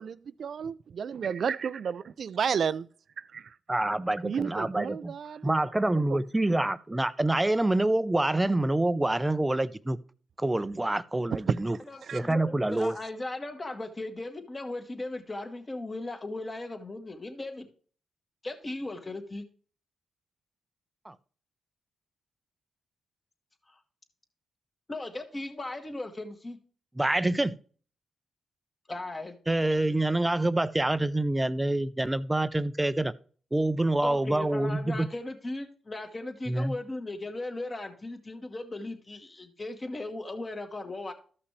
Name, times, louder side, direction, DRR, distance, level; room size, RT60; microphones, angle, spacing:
voice 1, 0.0-2.8 4.2-5.6 11.3-11.4 12.0-12.2, right 7 dB, 65° right, 0.4 m, -32 dB
voice 2, 3.7-5.1 5.4-10.0 10.4-11.8 12.1-13.0 21.0-21.1 27.0-27.5 29.5-33.1 33.5-35.1 36.5-36.8, right 1 dB, 15° right, 0.6 m, -26 dB
voice 3, 11.9-17.7 18.4-19.4 23.7-23.8 24.9-26.6 28.9-29.3 34.0-41.1, left 2 dB, 30° left, 1.9 m, -37 dB
13.5 x 5.8 x 3.2 m
supercardioid pair, 55°, 0 cm